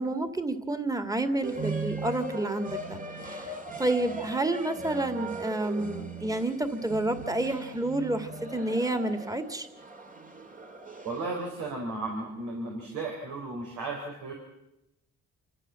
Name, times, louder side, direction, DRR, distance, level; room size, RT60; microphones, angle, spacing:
voice 1, 0.0-3.0 3.3-3.5 3.8-9.7, right 2 dB, 10° right, 8 dB, 2.1 m, -29 dB
sound 1, 1.4-11.6, right 3 dB, 25° right, 2.0 m, -39 dB
voice 2, 11.0-14.3, right 3 dB, 90° right, 0 dB, 4.4 m, -34 dB
27.5 x 14.0 x 7.6 m, 0.88 s
cardioid pair, 90°, 30 cm